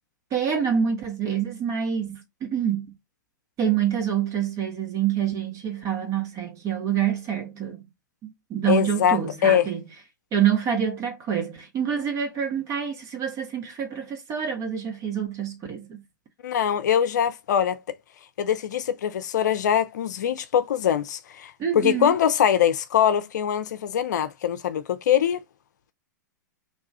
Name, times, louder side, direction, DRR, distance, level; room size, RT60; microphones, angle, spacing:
voice 1, 0.3-2.9 3.6-7.8 8.2-9.8 10.3-16.0 21.6-22.2, right 8 dB, 30° right, 1.3 m, -26 dB
voice 2, 8.7-9.7 16.4-17.8 18.4-25.4, left 9 dB, 65° left, 0.5 m, -23 dB
3.0 x 2.3 x 4.1 m
hypercardioid pair, 105°, 10 cm